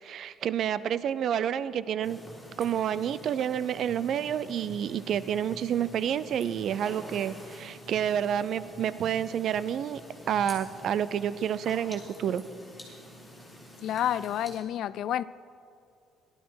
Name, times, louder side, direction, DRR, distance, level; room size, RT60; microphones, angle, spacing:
voice 1, 0.0-2.2 2.6-10.0 10.3-12.4, right 9 dB, 55° right, 16 dB, 0.5 m, -29 dB
sound 1, 2.0-14.6, equal, 5° left, 3.5 m, -47 dB
voice 2, 13.8-15.2, left 11 dB, 60° left, 18 dB, 0.3 m, -29 dB
18.0 x 12.5 x 4.7 m, 2.5 s
cardioid pair, 150°, 0 cm